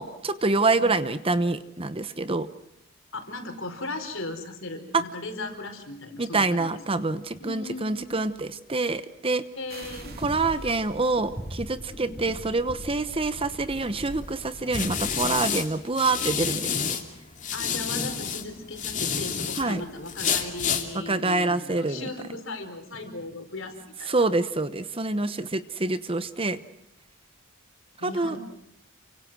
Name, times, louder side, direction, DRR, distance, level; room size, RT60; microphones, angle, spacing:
voice 1, 0.0-2.5 4.9-5.0 6.2-9.4 10.2-17.0 19.6-19.8 20.9-22.1 24.1-26.6 28.0-28.4, right 3 dB, 25° right, 12 dB, 0.9 m, -26 dB
voice 2, 3.1-6.7 7.4-8.2 9.5-10.2 11.9-12.4 17.5-24.3 28.0-28.4, left 2 dB, 60° left, 6 dB, 4.7 m, -37 dB
sound 1, 9.7-11.7, right 5 dB, 45° right, 3.5 m, -49 dB
sound 2, 9.8-15.3, equal, 10° right, 6.2 m, -40 dB
sound 3, 13.8-17.0 17.4-19.6 20.1-20.8, left 7 dB, 35° left, 2.9 m, -29 dB
29.5 x 25.0 x 6.2 m, 0.77 s
head